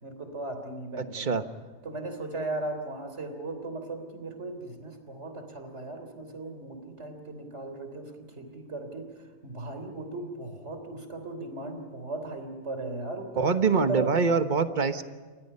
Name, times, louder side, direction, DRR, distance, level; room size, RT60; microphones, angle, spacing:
voice 1, 0.0-1.4 1.8-9.1 9.4-14.1, right 2 dB, 55° right, 6 dB, 3.8 m, -37 dB
voice 2, 1.0-1.4 13.4-15.0, right 5 dB, 35° right, 9 dB, 1.3 m, -25 dB
29.0 x 24.5 x 5.6 m, 1.4 s
omnidirectional pair, 1.4 m